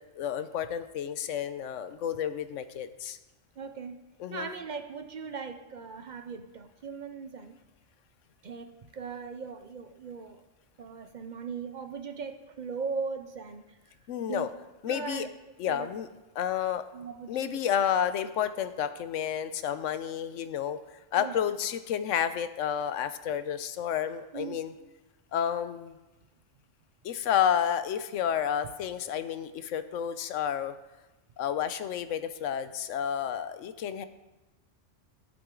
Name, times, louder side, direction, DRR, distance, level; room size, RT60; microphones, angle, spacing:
voice 1, 0.2-3.2 4.2-4.5 14.1-14.5 14.8-15.3 15.6-16.1 16.4-16.9 17.3-20.8 21.1-24.7 25.3-26.0 27.0-30.8 31.4-34.0, left 9 dB, 90° left, 11 dB, 1.0 m, -30 dB
voice 2, 3.6-7.5 8.4-10.4 10.8-13.8 14.3-14.5 14.9-15.3 15.7-15.9 16.9-17.6 21.2-21.3 24.3-24.6, right 5 dB, 50° right, 8 dB, 0.6 m, -39 dB
12.5 x 7.8 x 3.7 m, 1.1 s
omnidirectional pair, 1.3 m